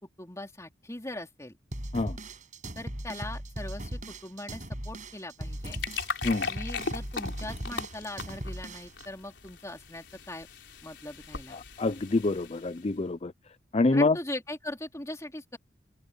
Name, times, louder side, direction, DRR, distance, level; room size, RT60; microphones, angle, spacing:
voice 1, 0.0-1.5 2.7-5.8 6.5-10.5 10.8-11.6 13.9-15.6, left 1 dB, 15° left, 3.4 m, -40 dB
sound 1, 1.7-9.0, right 1 dB, 45° right, 6.8 m, -38 dB
sound 2, 5.4-12.9, left 5 dB, 75° left, 4.1 m, -39 dB
voice 2, 11.5-13.3 13.7-14.2, left 3 dB, 35° left, 0.5 m, -26 dB
open air
head